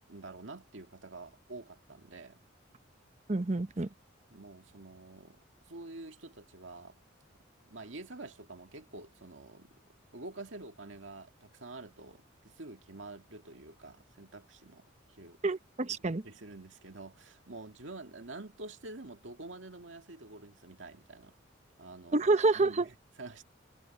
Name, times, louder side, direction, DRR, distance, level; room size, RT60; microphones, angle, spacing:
voice 1, 0.1-2.4 4.3-5.4 5.7-7.0 7.7-9.7 10.1-15.4 16.1-21.4 21.8-22.3 22.5-23.4, right 2 dB, 75° right, 2.2 m, -48 dB
voice 2, 3.3-3.9 15.4-16.2 22.1-22.9, right 3 dB, 35° right, 0.8 m, -28 dB
head